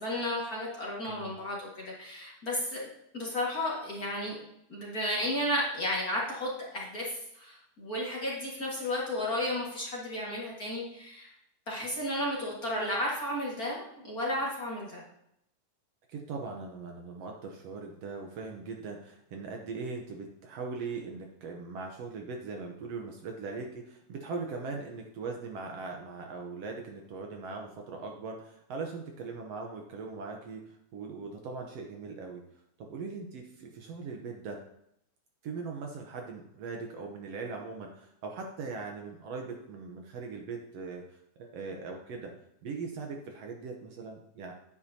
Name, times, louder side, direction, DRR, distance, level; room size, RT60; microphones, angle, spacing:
voice 1, 0.0-2.9 3.1-4.4 4.7-7.1 7.3-11.3 11.7-15.0, left 1 dB, 35° left, -5 dB, 1.9 m, -33 dB
voice 2, 1.1-1.4 16.1-32.4 32.8-34.6 35.4-42.3 42.6-44.5, right 4 dB, 65° right, 2 dB, 1.8 m, -40 dB
9.6 x 9.6 x 2.8 m, 0.76 s
omnidirectional pair, 3.4 m